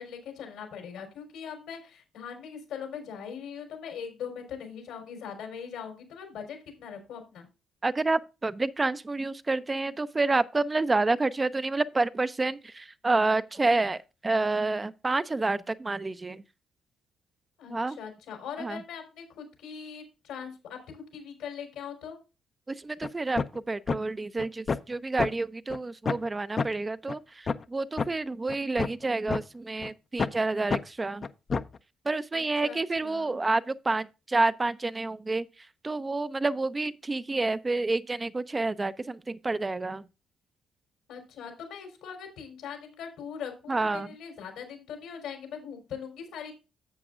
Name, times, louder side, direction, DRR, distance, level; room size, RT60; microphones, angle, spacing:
voice 1, 0.0-7.5 17.6-22.2 32.3-33.4 41.1-46.5, left 7 dB, 90° left, 3.7 m, -41 dB
voice 2, 7.8-16.4 17.7-18.0 18.6-18.8 22.7-31.2 32.1-35.5 35.8-40.0 43.7-44.1, right 3 dB, 20° right, 0.4 m, -29 dB
sound 1, 23.0-23.1 23.4-23.6 23.9-24.0 24.4-24.9 25.2-25.3 25.7-25.8 26.1-26.3 26.6-26.7 27.1-27.2 27.5-27.6 28.0-28.1 28.5-29.4 29.8-29.9 30.2-30.4 30.7-30.8 31.2-31.8, left 5 dB, 40° left, 0.5 m, -28 dB
11.0 x 7.7 x 2.5 m
cardioid pair, 90°, 0 cm